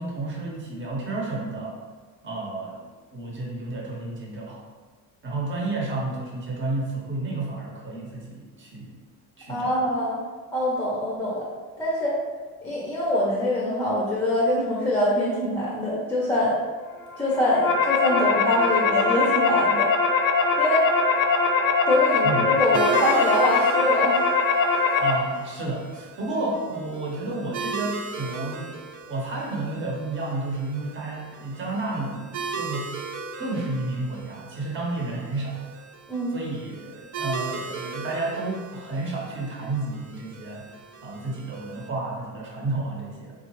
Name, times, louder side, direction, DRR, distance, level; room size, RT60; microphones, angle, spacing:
voice 1, 0.0-1.8 2.2-2.9 3.1-4.6 5.2-9.0 9.4-9.8 22.1-22.8 25.0-28.7 29.1-32.9 33.4-35.6 36.3-40.7 41.0-43.3, right 2 dB, 35° right, -2 dB, 0.8 m, -31 dB
voice 2, 9.5-10.2 10.5-11.5 11.8-12.2 12.6-16.6 17.2-19.9 20.6-20.8 21.9-24.2 36.1-36.4, left 1 dB, 10° left, -5 dB, 0.6 m, -24 dB
sound 1, 17.3-25.1, left 4 dB, 70° left, 0.5 m, -22 dB
sound 2, 22.7-41.9, right 4 dB, 65° right, 0.4 m, -37 dB
3.7 x 2.3 x 2.9 m, 1.4 s
cardioid pair, 135°, 34 cm